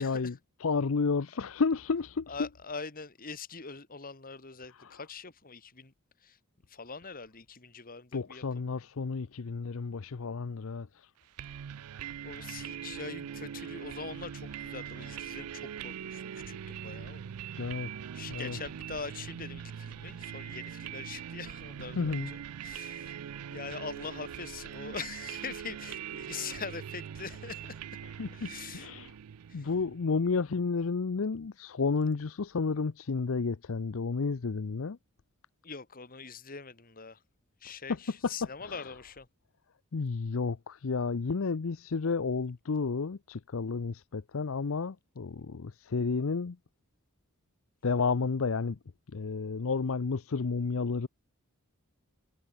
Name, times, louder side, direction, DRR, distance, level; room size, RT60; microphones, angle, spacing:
voice 1, 0.0-2.5 4.7-5.0 8.1-11.1 17.6-17.9 18.3-18.6 22.0-22.3 28.0-29.2 29.5-35.0 37.9-38.3 38.6-38.9 39.9-46.6 47.8-48.8 49.1-51.1, left 4 dB, 65° left, 0.6 m, -31 dB
voice 2, 2.3-5.9 6.2-6.4 6.7-8.4 12.2-17.3 18.1-23.2 23.5-27.8 28.3-28.9 29.5-29.7 35.6-37.2 37.6-39.3, left 5 dB, 40° left, 2.0 m, -43 dB
sound 1, 11.4-30.1, right 9 dB, 90° right, 0.4 m, -42 dB
head